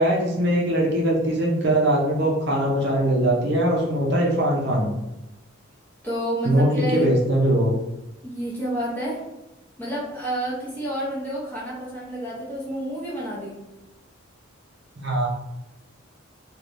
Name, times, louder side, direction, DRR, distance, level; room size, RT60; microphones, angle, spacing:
voice 1, 0.0-4.9 6.4-7.7 15.0-15.3, right 1 dB, 50° right, -2 dB, 0.6 m, -21 dB
voice 2, 6.0-7.0 8.2-9.2 9.8-13.5, equal, 10° left, -6 dB, 0.7 m, -29 dB
3.2 x 2.4 x 2.5 m, 0.95 s
head